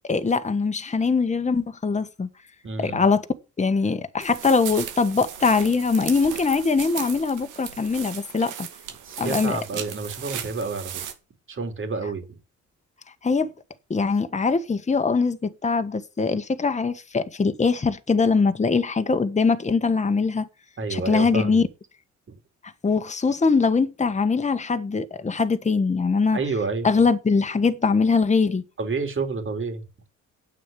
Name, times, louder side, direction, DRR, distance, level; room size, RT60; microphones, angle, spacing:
voice 1, 0.1-2.3 2.8-3.2 3.6-8.7 9.2-9.6 13.2-13.5 13.9-20.5 20.9-21.6 22.8-26.4 26.8-28.6, left 4 dB, 25° left, 1.4 m, -22 dB
voice 2, 2.6-3.0 9.0-11.0 11.5-12.4 20.8-21.6 26.3-26.9 28.8-29.8, right 4 dB, 40° right, 3.6 m, -29 dB
sound 1, 4.2-11.1, right 9 dB, 90° right, 2.4 m, -36 dB
9.2 x 8.5 x 9.1 m
cardioid pair, 90°, 30 cm